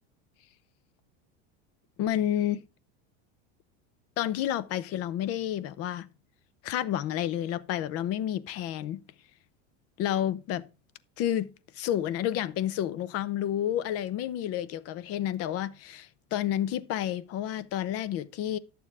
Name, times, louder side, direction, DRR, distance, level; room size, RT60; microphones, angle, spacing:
voice 1, 2.0-2.6 4.2-6.1 6.6-9.0 10.0-10.7 11.2-11.5 11.7-18.6, left 11 dB, 45° left, 0.8 m, -30 dB
11.0 x 7.0 x 3.6 m
supercardioid pair, 130°, 33 cm